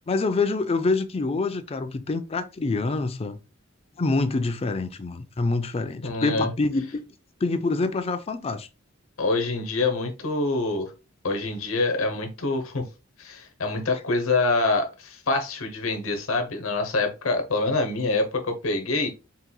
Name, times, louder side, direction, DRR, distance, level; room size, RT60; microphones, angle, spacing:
voice 1, 0.1-3.4 4.0-7.1 7.4-8.7, left 3 dB, 30° left, 0.4 m, -26 dB
voice 2, 6.0-6.5 9.2-10.9 11.2-12.8 13.2-19.1, left 3 dB, 85° left, 1.0 m, -25 dB
4.3 x 3.8 x 2.3 m
head